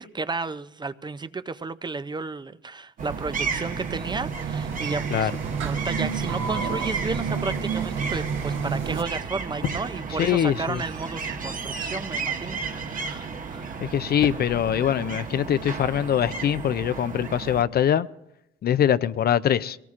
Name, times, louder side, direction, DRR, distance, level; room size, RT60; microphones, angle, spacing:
voice 1, 0.0-5.3 5.6-13.8, right 4 dB, 20° right, 0.5 m, -33 dB
sound 1, 3.0-17.6, right 5 dB, 45° right, 1.2 m, -33 dB
sound 2, 3.0-9.0, right 6 dB, 75° right, 1.2 m, -30 dB
sound 3, 6.0-16.8, left 6 dB, 75° left, 1.0 m, -42 dB
voice 2, 10.2-10.8 13.8-18.1 18.6-19.8, left 9 dB, 50° left, 0.5 m, -23 dB
23.0 x 18.0 x 2.5 m
cardioid pair, 90°, 20 cm